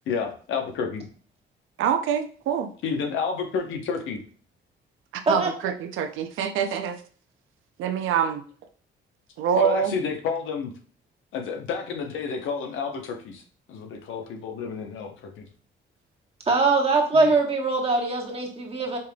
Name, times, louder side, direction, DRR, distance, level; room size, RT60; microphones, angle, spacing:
voice 1, 0.1-1.0 2.8-4.2 9.5-10.7 11.3-13.4 13.7-15.4, left 5 dB, 80° left, 3 dB, 0.9 m, -30 dB
voice 2, 1.8-2.7 5.3-7.0 7.8-8.4 9.4-9.9, right 8 dB, 85° right, 8 dB, 0.5 m, -25 dB
voice 3, 16.5-19.0, right 3 dB, 30° right, 0 dB, 1.3 m, -22 dB
5.5 x 3.3 x 2.3 m, 0.43 s
cardioid pair, 90°, 20 cm